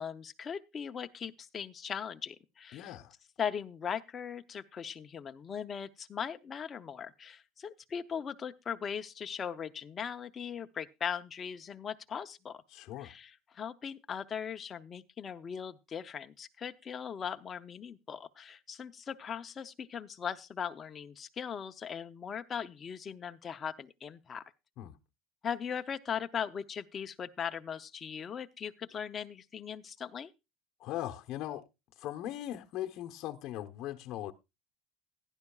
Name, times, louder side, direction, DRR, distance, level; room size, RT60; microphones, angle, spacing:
voice 1, 0.0-2.9 3.4-12.6 13.0-24.4 25.4-30.3, left 7 dB, 25° left, 0.7 m, -39 dB
voice 2, 2.7-3.1 12.7-13.1 24.8-25.0 30.8-31.7 32.0-34.3, left 13 dB, 50° left, 1.0 m, -39 dB
17.5 x 11.0 x 2.4 m
cardioid pair, 160°, 0 cm